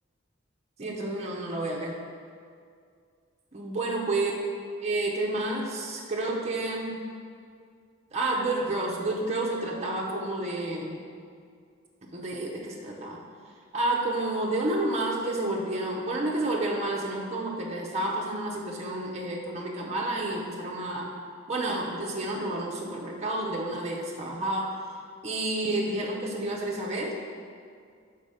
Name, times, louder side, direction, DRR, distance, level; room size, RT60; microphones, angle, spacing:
voice 1, 0.8-2.0 3.5-4.3 4.8-7.0 8.1-11.0 12.1-13.2 13.7-21.1 21.5-24.8 25.2-27.1, right 2 dB, 35° right, -3 dB, 0.6 m, -30 dB
4.9 x 4.1 x 5.5 m, 2.2 s
head